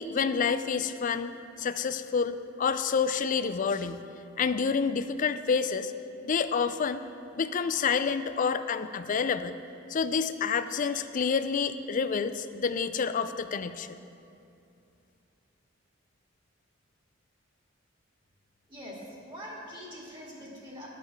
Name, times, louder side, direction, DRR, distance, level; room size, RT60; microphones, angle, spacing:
voice 1, 0.0-4.0 4.4-5.9 6.2-7.0 7.3-9.6 9.9-14.0, left 6 dB, 40° left, 11 dB, 0.4 m, -28 dB
voice 2, 18.7-19.0 19.3-20.9, equal, 25° right, -4 dB, 2.0 m, -43 dB
11.0 x 6.7 x 5.7 m, 2.6 s
head